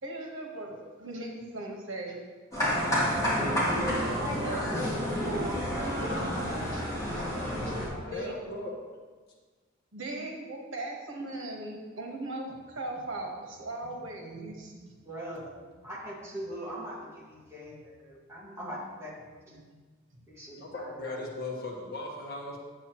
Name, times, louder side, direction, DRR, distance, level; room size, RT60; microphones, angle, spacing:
voice 1, 0.0-2.2 2.9-4.8 5.2-6.0 6.7-7.2 7.6-7.8 8.1-8.6 9.9-15.0 19.6-19.8 20.2-20.3 20.6-20.7, right 2 dB, 70° right, 0 dB, 1.3 m, -39 dB
sound 1, 2.5-7.9, equal, 15° left, 2.9 m, -29 dB
voice 2, 7.9-8.7 20.6-22.6, left 2 dB, 50° left, -2 dB, 1.5 m, -38 dB
voice 3, 15.0-19.6 20.3-21.2, equal, 15° right, -5 dB, 1.8 m, -42 dB
9.0 x 8.2 x 3.1 m, 1.4 s
head